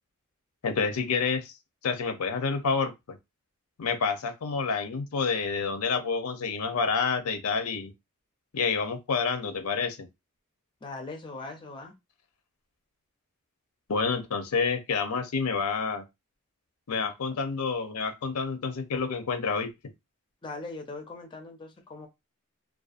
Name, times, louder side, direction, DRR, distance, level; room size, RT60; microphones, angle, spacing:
voice 1, 0.6-1.5 1.8-3.2 3.8-7.9 8.5-10.1 13.9-16.0 16.9-19.7, left 5 dB, 90° left, 0.6 m, -28 dB
voice 2, 10.8-11.9 20.4-22.1, left 3 dB, 20° left, 0.4 m, -40 dB
2.5 x 2.2 x 2.4 m
head